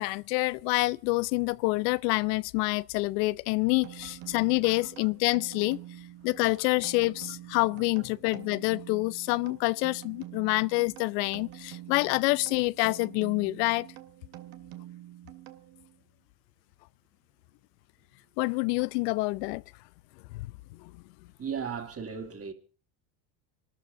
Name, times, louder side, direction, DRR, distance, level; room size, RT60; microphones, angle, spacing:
voice 1, 0.0-5.8 6.2-13.9 18.4-19.6 20.3-20.5, left 24 dB, 80° left, 0.7 m, -27 dB
sound 1, 3.8-16.0, right 14 dB, 70° right, 1.9 m, -47 dB
voice 2, 21.4-22.5, right 7 dB, 30° right, 2.8 m, -36 dB
26.0 x 13.0 x 3.7 m
supercardioid pair, 110°, 48 cm